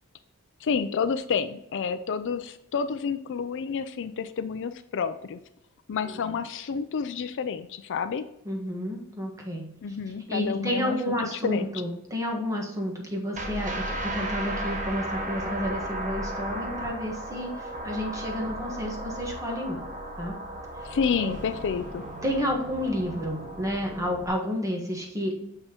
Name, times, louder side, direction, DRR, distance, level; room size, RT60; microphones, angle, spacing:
voice 1, 0.6-5.4 5.9-8.2 9.8-11.7 20.8-22.0, left 6 dB, 55° left, 11 dB, 0.4 m, -29 dB
voice 2, 8.4-10.0 10.3-19.8 20.2-20.3 21.2-21.3 22.2-25.3, equal, 15° right, 0 dB, 1.4 m, -30 dB
sound 1, 13.3-24.3, right 1 dB, 35° right, 1.0 m, -35 dB
6.8 x 5.6 x 2.9 m, 0.82 s
head